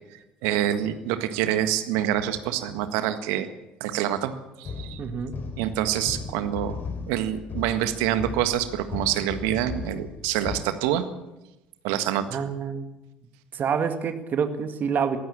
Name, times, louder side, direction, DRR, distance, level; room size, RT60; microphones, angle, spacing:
voice 1, 0.4-3.5 3.8-5.0 5.6-6.8 7.1-11.0 11.8-12.4, right 11 dB, 65° right, 10 dB, 1.7 m, -26 dB
sound 1, 4.6-10.6, left 4 dB, 45° left, 3.6 m, -36 dB
voice 2, 5.0-5.4 12.3-12.9 13.5-15.2, right 6 dB, 40° right, 8 dB, 2.1 m, -27 dB
22.0 x 16.0 x 7.4 m, 0.99 s
figure-of-eight pair, 60°, 5 cm